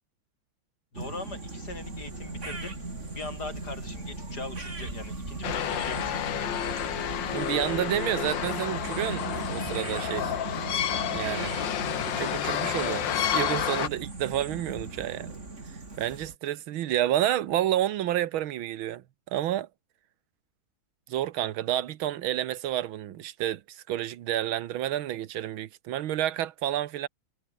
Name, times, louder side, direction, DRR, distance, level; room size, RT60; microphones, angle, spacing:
voice 1, 0.9-2.7 3.1-6.4, left 3 dB, 50° left, 5.6 m, -40 dB
sound 1, 0.9-16.3, right 3 dB, 35° right, 3.6 m, -38 dB
Motor vehicle (road) / Engine, 1.6-8.5, left 3 dB, 20° left, 2.1 m, -47 dB
sound 2, 5.4-13.9, left 10 dB, 65° left, 1.8 m, -30 dB
voice 2, 7.3-10.4 11.1-11.5 12.1-15.4 16.0-19.7 21.1-27.1, right 12 dB, 80° right, 1.8 m, -30 dB
omnidirectional pair, 2.2 m